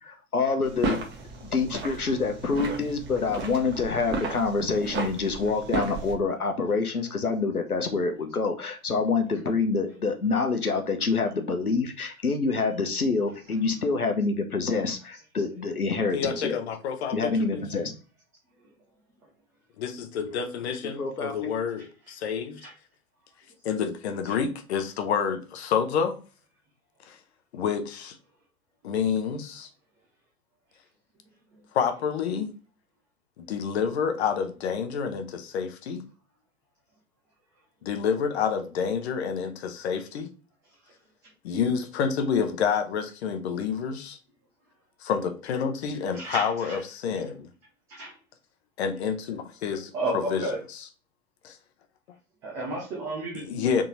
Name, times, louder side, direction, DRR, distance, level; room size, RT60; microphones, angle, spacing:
voice 1, 0.0-1.0 1.4-16.6 17.1-17.9 20.8-21.5, left 4 dB, 85° left, 0.9 m, -27 dB
sound 1, 0.6-6.1, right 3 dB, 25° right, 1.0 m, -34 dB
voice 2, 16.1-17.6 19.8-22.6 23.6-26.2 27.1-27.2 27.5-28.2 28.8-29.7 31.7-32.5 33.4-36.0 37.8-40.3 41.4-44.2 45.0-47.5 48.8-50.4 51.4-51.6 53.4-53.8, left 6 dB, 50° left, 0.9 m, -28 dB
voice 3, 46.1-46.8 47.9-48.1 49.9-50.6 52.4-53.4, right 2 dB, 10° right, 0.3 m, -32 dB
3.9 x 3.7 x 3.0 m
figure-of-eight pair, 105°, 43 cm